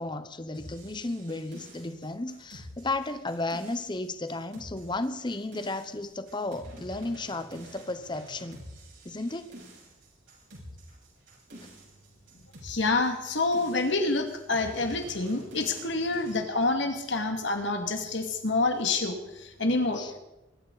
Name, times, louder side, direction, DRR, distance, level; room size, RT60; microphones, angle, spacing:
voice 1, 0.0-8.6 9.0-9.5 20.0-20.1, left 2 dB, 25° left, 10 dB, 0.9 m, -34 dB
sound 1, 0.5-16.4, equal, 70° right, 6.3 m, -48 dB
voice 2, 12.6-20.2, left 3 dB, 65° left, 5 dB, 2.3 m, -27 dB
23.0 x 13.0 x 4.2 m, 0.96 s
head